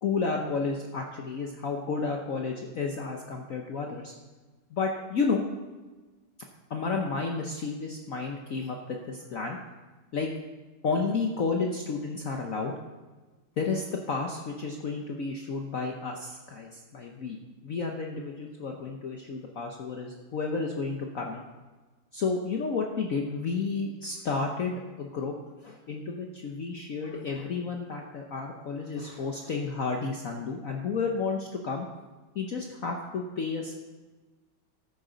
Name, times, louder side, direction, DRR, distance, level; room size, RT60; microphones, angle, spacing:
voice 1, 0.0-4.1 4.7-5.4 6.7-9.6 10.1-10.3 10.8-12.7 13.6-21.5 22.1-25.3 25.6-31.9 32.3-33.7, left 4 dB, 55° left, 1 dB, 1.0 m, -31 dB
13.0 x 9.8 x 3.9 m, 1.3 s
omnidirectional pair, 2.2 m